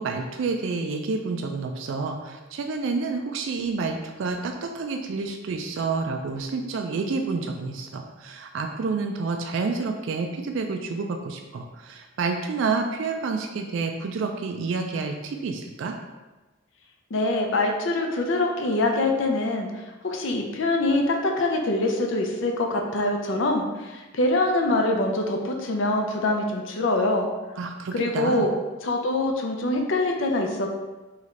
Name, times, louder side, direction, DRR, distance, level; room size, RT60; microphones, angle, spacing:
voice 1, 0.0-16.0 27.6-28.5, right 4 dB, 70° right, 4 dB, 0.3 m, -29 dB
voice 2, 17.1-27.3 27.9-28.5 28.8-30.7, left 2 dB, 65° left, 2 dB, 0.6 m, -24 dB
3.2 x 3.2 x 3.7 m, 1.2 s
head